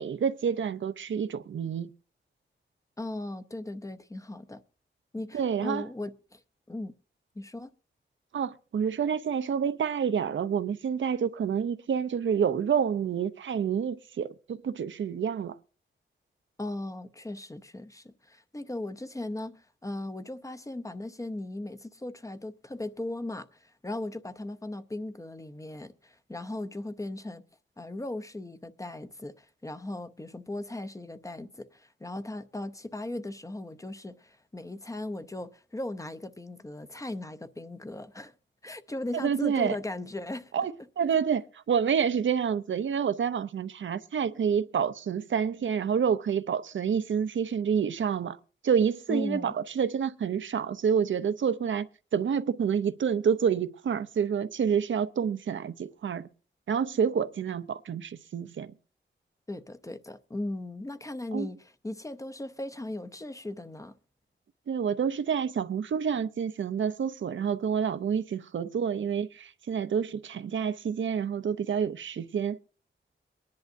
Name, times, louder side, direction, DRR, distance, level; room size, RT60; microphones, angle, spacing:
voice 1, 0.0-1.9 5.3-5.9 8.3-15.6 39.1-39.8 40.5-48.4 48.6-56.3 56.7-58.7 61.3-61.5 64.7-72.6, right 7 dB, 75° right, 0.6 m, -28 dB
voice 2, 3.0-4.6 5.1-6.4 6.7-6.9 7.4-7.7 16.6-27.4 27.8-38.3 38.6-40.5 49.1-49.5 59.5-63.9, left 1 dB, 15° left, 0.6 m, -37 dB
23.5 x 10.5 x 2.6 m
wide cardioid pair, 165°, 20 cm